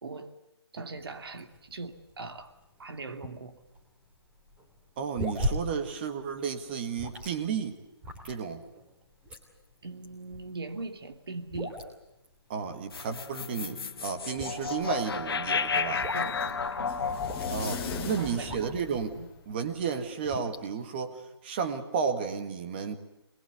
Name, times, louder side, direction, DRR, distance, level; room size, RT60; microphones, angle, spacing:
voice 1, 0.0-0.4 0.7-2.5 2.8-3.6 9.8-11.8 16.1-16.9 17.7-18.7 19.2-19.3, right 3 dB, 60° right, 7 dB, 2.6 m, -40 dB
sound 1, 0.9-19.1 19.5-20.7, equal, 10° right, 2.9 m, -40 dB
voice 2, 5.0-7.8 8.2-8.6 12.5-16.0 17.5-19.2 19.5-23.0, right 6 dB, 25° right, 7 dB, 1.9 m, -32 dB
sound 2, 12.9-19.2, left 5 dB, 60° left, 1.3 m, -33 dB
sound 3, 14.5-19.5, left 5 dB, 10° left, 2.0 m, -41 dB
24.5 x 21.5 x 8.1 m, 0.92 s
hypercardioid pair, 165°, 14 cm